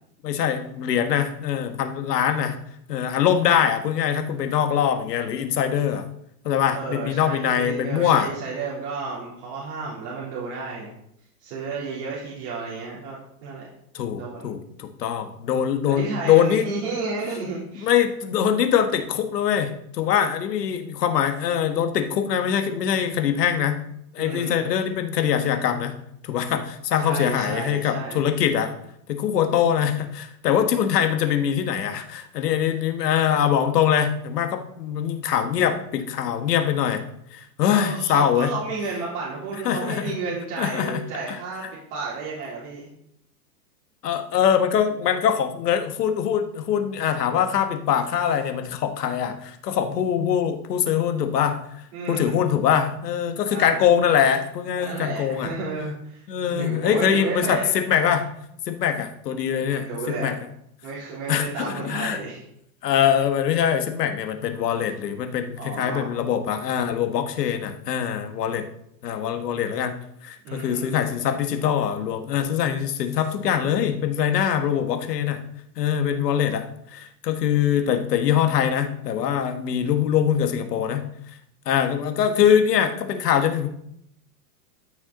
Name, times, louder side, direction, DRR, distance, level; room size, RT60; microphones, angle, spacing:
voice 1, 0.2-2.6 2.9-6.1 6.5-8.3 13.9-16.7 17.8-23.8 24.1-26.0 26.2-28.7 29.1-37.0 37.3-38.5 39.7-40.2 40.6-41.0 41.3-41.4 44.0-51.6 52.1-55.5 56.3-58.3 58.7-60.4 61.3-62.2 62.8-68.7 69.0-69.9 70.2-75.4 75.8-81.1 81.7-83.7, left 9 dB, 80° left, 7 dB, 1.6 m, -23 dB
voice 2, 6.7-10.9 11.4-13.7 14.1-14.5 15.9-17.9 24.2-24.6 27.0-28.2 37.7-41.6 41.9-42.9 51.9-52.3 53.5-53.8 54.8-57.7 59.6-60.3 60.8-62.4 65.6-66.0 70.4-70.9, right 4 dB, 45° right, -6 dB, 3.3 m, -32 dB
13.5 x 6.2 x 3.9 m, 0.74 s
supercardioid pair, 160°, 47 cm